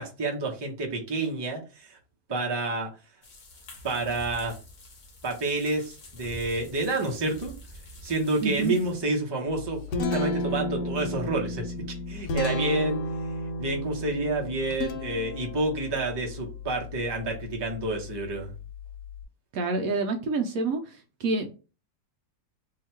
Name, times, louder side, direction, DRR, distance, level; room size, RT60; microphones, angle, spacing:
voice 1, 0.0-2.0 2.3-2.9 3.8-4.5 5.2-7.5 8.0-11.7 12.1-13.0 13.6-18.5, right 2 dB, 30° right, 0 dB, 0.5 m, -29 dB
sound 1, 3.2-9.2, left 1 dB, 60° left, 0.4 m, -47 dB
voice 2, 8.4-8.7 19.5-21.5, right 3 dB, 70° right, 4 dB, 0.9 m, -28 dB
Guitar, 9.5-19.2, left 2 dB, 85° left, 1.3 m, -33 dB
2.8 x 2.8 x 4.4 m, 0.33 s
omnidirectional pair, 1.9 m